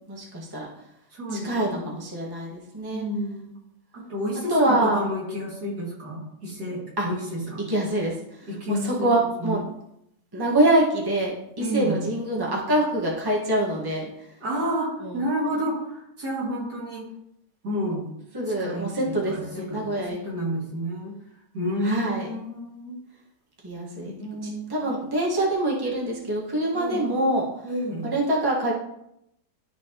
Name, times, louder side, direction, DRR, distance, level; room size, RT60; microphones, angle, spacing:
voice 1, 0.1-0.7 1.4-3.0 4.5-5.0 7.0-7.1 7.7-8.1 8.7-9.6 10.3-14.1 15.0-15.1 18.3-20.2 21.8-22.3 23.6-24.1 24.4-27.5 28.0-28.7, right 1 dB, 15° right, -4 dB, 1.5 m, -25 dB
voice 2, 1.1-2.0 2.9-3.6 3.9-7.6 8.4-9.6 11.6-12.0 14.4-17.1 17.6-18.1 18.4-21.2 21.5-23.0 24.0-25.0 26.7-27.1 27.6-28.1, equal, 70° right, -5 dB, 2.9 m, -30 dB
12.0 x 4.5 x 3.0 m, 0.79 s
omnidirectional pair, 1.8 m